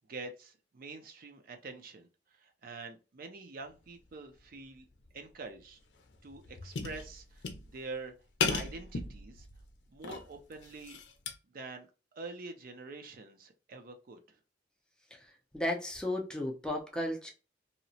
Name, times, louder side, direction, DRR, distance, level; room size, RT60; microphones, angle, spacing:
voice 1, 0.1-2.1 2.3-4.9 5.1-5.8 6.2-7.5 7.7-8.1 8.5-9.5 9.9-11.0 11.5-14.4, right 3 dB, 50° right, 0.4 m, -46 dB
sound 1, 4.9-5.1 5.5-5.6 6.0-7.9 8.4-9.7 10.0-11.3, left 5 dB, 70° left, 0.5 m, -36 dB
voice 2, 15.5-17.3, left 1 dB, 5° left, 0.5 m, -34 dB
2.8 x 2.0 x 2.7 m
head